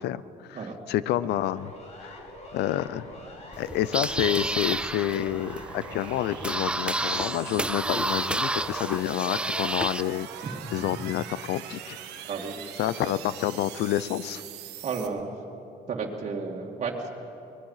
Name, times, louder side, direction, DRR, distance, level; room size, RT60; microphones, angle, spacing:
voice 1, 0.0-1.7 2.0-2.2 2.5-3.1 3.6-10.3 10.7-12.0 12.8-14.4, left 13 dB, 80° left, 17 dB, 0.6 m, -28 dB
Siren, 1.5-9.5, left 1 dB, 40° left, 3.2 m, -45 dB
sound 1, 1.8-15.1, right 9 dB, 90° right, 1.5 m, -43 dB
sound 2, 3.5-10.0, right 2 dB, 5° right, 0.4 m, -30 dB
voice 2, 12.3-12.6 13.0-13.1 14.8-15.3 15.9-17.1, right 5 dB, 40° right, -2 dB, 2.5 m, -32 dB
23.5 x 19.5 x 5.7 m, 2.8 s
cardioid pair, 110°, 17 cm